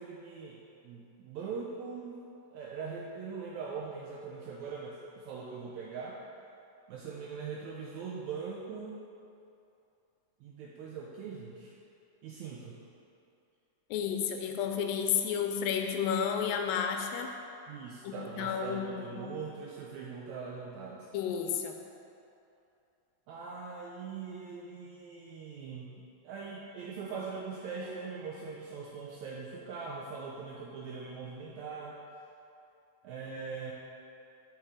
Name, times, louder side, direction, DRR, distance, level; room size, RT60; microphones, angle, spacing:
voice 1, 0.0-2.2 2.5-6.2 6.9-9.0 10.4-11.7 12.2-12.8 17.7-21.1 23.3-32.0 33.0-33.7, right 5 dB, 85° right, -3 dB, 1.6 m, -41 dB
voice 2, 13.9-17.3 18.0-19.3 21.1-21.8, left 7 dB, 90° left, 4 dB, 2.3 m, -32 dB
6.5 x 4.5 x 4.8 m, 2.7 s
omnidirectional pair, 3.9 m